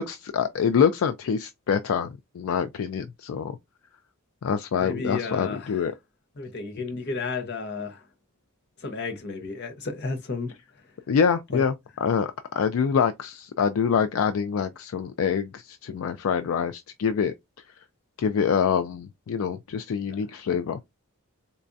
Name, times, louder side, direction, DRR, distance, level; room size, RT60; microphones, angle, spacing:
voice 1, 0.0-3.6 4.4-5.9 11.1-11.7 12.0-17.3 18.2-20.8, left 6 dB, 65° left, 0.3 m, -25 dB
voice 2, 4.8-5.8 6.4-8.0 8.8-10.5 11.5-11.6, left 4 dB, 50° left, 0.7 m, -32 dB
4.1 x 2.3 x 2.5 m
head